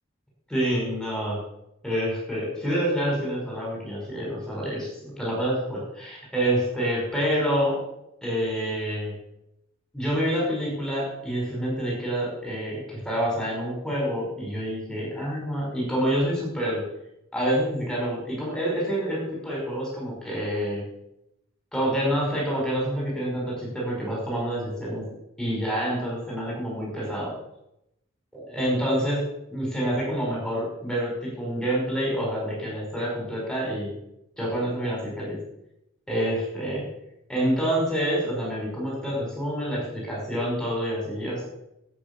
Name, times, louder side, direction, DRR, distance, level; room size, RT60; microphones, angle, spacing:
voice 1, 0.5-1.4 1.8-7.8 8.2-9.1 9.9-16.8 17.3-20.8 21.7-25.0 25.4-27.3 28.3-29.2 29.5-33.9 34.4-35.4 36.1-36.8 37.3-41.5, equal, 5° left, -4 dB, 5.5 m, -27 dB
13.0 x 8.6 x 6.9 m, 0.85 s
head